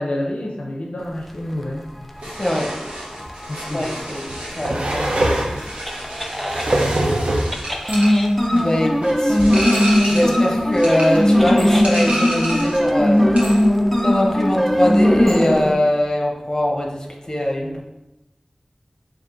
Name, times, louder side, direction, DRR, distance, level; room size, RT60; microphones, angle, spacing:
voice 1, 0.0-2.4 3.5-4.0, left 1 dB, 70° left, -1 dB, 0.4 m, -29 dB
sound 1, 2.2-6.7 7.5-15.7, equal, 5° left, 0.4 m, -19 dB
sound 2, 2.2-12.9 13.2-13.7, right 1 dB, 85° right, 0.9 m, -31 dB
voice 2, 2.4-2.7 3.7-5.6 8.5-9.5 10.0-13.3 14.0-17.8, left 1 dB, 30° left, -1 dB, 0.8 m, -22 dB
sound 3, 3.2-3.3 4.3-5.6 6.2-7.6 8.5-8.6 9.0-9.1, right 1 dB, 70° right, 0.5 m, -22 dB
4.8 x 2.5 x 2.5 m, 0.95 s
wide cardioid pair, 55°, 2 cm